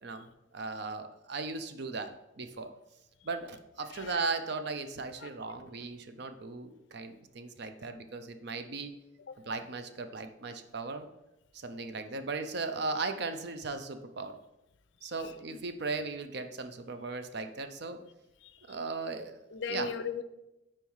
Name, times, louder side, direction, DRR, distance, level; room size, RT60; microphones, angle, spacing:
voice 1, 0.0-2.7 3.2-8.9 9.5-11.1 11.5-14.4 15.0-18.0 18.7-19.4 19.7-19.9, right 4 dB, 55° right, 0.5 m, -37 dB
voice 2, 15.0-15.6 18.4-18.8 19.5-20.2, left 5 dB, 65° left, 0.5 m, -39 dB
5.4 x 4.4 x 4.6 m
head